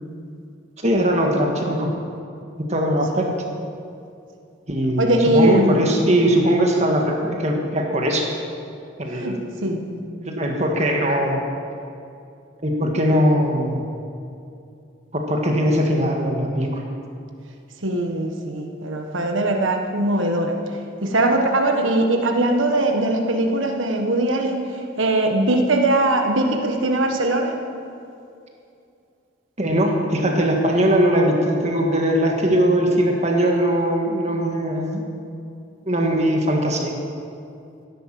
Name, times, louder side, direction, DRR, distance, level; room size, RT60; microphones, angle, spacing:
voice 1, 0.8-1.9 2.7-3.3 4.7-8.3 9.0-9.4 10.2-11.4 12.6-13.9 15.1-16.8 29.6-35.0 35.9-36.9, equal, 35° right, 1 dB, 1.7 m, -20 dB
voice 2, 5.0-5.8 9.1-9.4 9.6-10.0 17.8-20.5 21.0-24.7 25.0-27.5, right 1 dB, 80° right, 3 dB, 1.4 m, -20 dB
15.5 x 11.0 x 7.6 m, 2.5 s
head